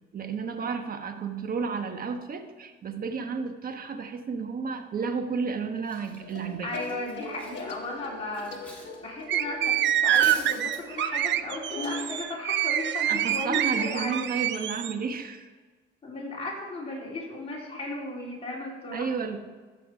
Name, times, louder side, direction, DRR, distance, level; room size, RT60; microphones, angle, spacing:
voice 1, 0.1-6.7 13.1-15.5 18.9-19.4, right 5 dB, 45° right, 6 dB, 1.2 m, -32 dB
Cutlery silverware, 5.2-5.5 5.8-8.9 9.2-9.4 9.8-10.8, equal, 5° left, 3.0 m, -45 dB
sound 1, 6.2-12.2, left 3 dB, 65° left, 1.4 m, -41 dB
voice 2, 6.6-14.4 16.0-19.2, left 2 dB, 30° left, -4 dB, 3.9 m, -36 dB
sound 2, 9.3-14.9, right 11 dB, 65° right, 0.5 m, -26 dB
14.5 x 5.8 x 4.8 m, 1.3 s
cardioid pair, 90°, 20 cm